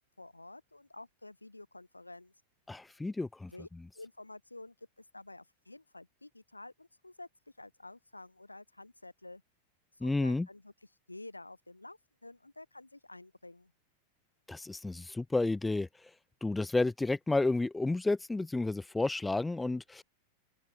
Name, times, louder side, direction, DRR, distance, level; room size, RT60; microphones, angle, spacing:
voice 1, 0.2-2.3 3.5-3.7 3.9-7.3 7.6-9.4 10.0-10.7 11.1-13.7, left 2 dB, 85° left, 6.4 m, -50 dB
voice 2, 2.7-3.5 10.0-10.5 14.5-16.1 16.4-20.0, left 2 dB, 10° left, 0.6 m, -31 dB
open air
figure-of-eight pair, 90°, 0 cm